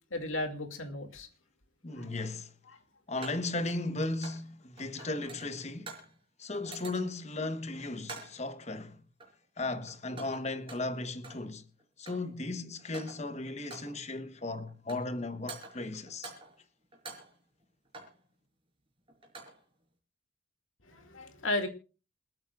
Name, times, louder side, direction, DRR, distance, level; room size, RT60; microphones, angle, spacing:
voice 1, 0.1-1.3 2.0-2.1 2.7-2.8 5.0-5.1 20.8-21.7, left 2 dB, 90° left, 2.5 m, -35 dB
sound 1, 1.0-1.1 3.2-4.5 4.8-6.2 6.5-7.3 8.0-8.5 9.2-9.6 9.9-11.5 11.8-12.4 12.8-13.3 13.7-14.1 14.7-15.2 15.5-16.6 16.9-18.2 19.1-19.6, right 3 dB, 25° right, 5.3 m, -48 dB
voice 2, 1.8-2.5 3.1-5.9 6.4-9.0 9.6-11.6 12.0-16.3, left 2 dB, 35° left, 1.2 m, -36 dB
27.5 x 9.4 x 2.5 m
head